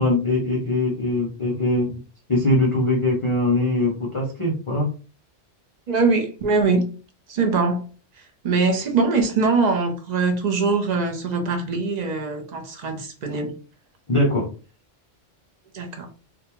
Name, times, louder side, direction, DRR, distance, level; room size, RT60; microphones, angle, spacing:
voice 1, 0.0-1.9 2.3-4.9 14.1-14.5, left 1 dB, 35° left, 0.5 m, -21 dB
voice 2, 5.9-6.8 7.3-7.8 8.2-13.5 15.7-16.1, right 4 dB, 50° right, 0.6 m, -22 dB
2.5 x 2.2 x 2.9 m
omnidirectional pair, 1.2 m